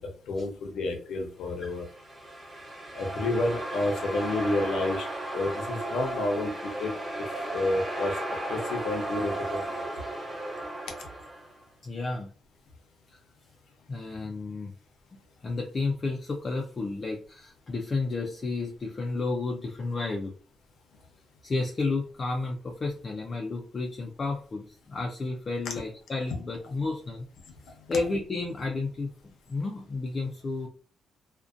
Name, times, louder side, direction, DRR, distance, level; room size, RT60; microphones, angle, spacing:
voice 1, 0.3-1.8 2.9-5.0 5.3-6.5 6.8-6.9 7.5-8.2 8.5-9.8, left 2 dB, 85° left, 3 dB, 0.6 m, -29 dB
sound 1, 1.7-11.6, right 1 dB, 15° right, 0.8 m, -35 dB
voice 2, 11.8-12.3 13.1-13.2 13.9-14.7 15.4-20.3 21.4-27.3 27.9-30.7, left 3 dB, 30° left, 0 dB, 0.3 m, -32 dB
2.5 x 2.1 x 2.4 m, 0.40 s
wide cardioid pair, 160°, 0 cm